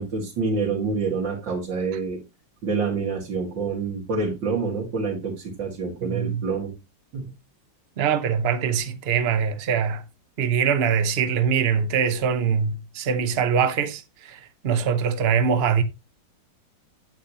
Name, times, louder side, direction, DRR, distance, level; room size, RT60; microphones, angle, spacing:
voice 1, 0.0-2.2 2.6-6.7 7.1-7.3, right 4 dB, 75° right, 2.8 m, -27 dB
voice 2, 6.0-6.4 8.0-10.0 10.4-14.4 14.6-15.8, right 7 dB, 45° right, 0.9 m, -23 dB
9.1 x 8.2 x 2.9 m
omnidirectional pair, 2.0 m